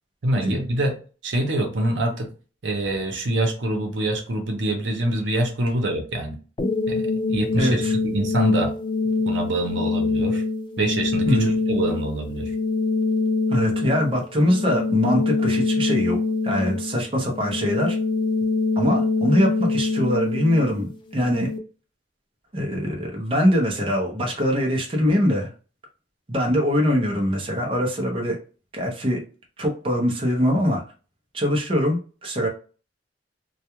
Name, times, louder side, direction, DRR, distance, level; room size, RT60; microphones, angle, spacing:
voice 1, 0.2-1.0 1.2-2.3 2.6-6.4 6.9-8.7 9.3-10.4 10.8-12.5, right 1 dB, 90° right, 3 dB, 0.7 m, -25 dB
sound 1, 6.6-21.6, left 3 dB, 25° left, 0.3 m, -24 dB
voice 2, 7.5-7.9 11.3-11.5 13.5-16.2 16.4-18.0 18.8-21.5 22.5-25.5 26.3-28.4 28.7-29.2 29.6-30.8 31.3-32.5, equal, 30° right, 1 dB, 0.6 m, -22 dB
2.3 x 2.2 x 2.9 m, 0.37 s
head